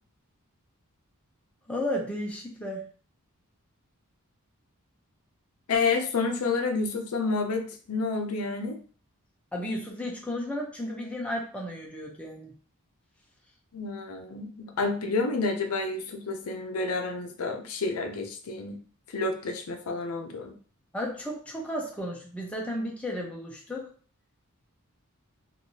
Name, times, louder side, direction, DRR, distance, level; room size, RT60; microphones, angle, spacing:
voice 1, 1.7-2.8 9.5-12.5 20.9-23.9, left 1 dB, 5° left, -2 dB, 0.6 m, -33 dB
voice 2, 5.7-8.8 13.7-18.8 19.1-20.5, left 3 dB, 75° left, 4 dB, 0.5 m, -29 dB
3.1 x 2.6 x 2.7 m, 0.41 s
head